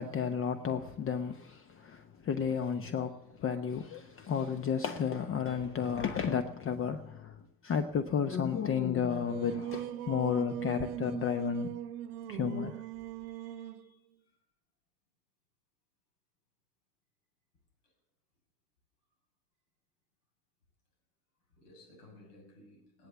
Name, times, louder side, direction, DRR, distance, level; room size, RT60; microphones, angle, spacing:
voice 1, 0.0-7.4 7.6-11.7 12.3-12.8, left 7 dB, 25° left, 0.9 m, -32 dB
Singing, 9.0-13.9, right 12 dB, 65° right, 0.9 m, -40 dB
voice 2, 13.1-14.4 17.8-17.9 21.5-23.1, left 2 dB, 70° left, 7.6 m, -59 dB
17.0 x 11.0 x 7.0 m
hypercardioid pair, 80°, 48 cm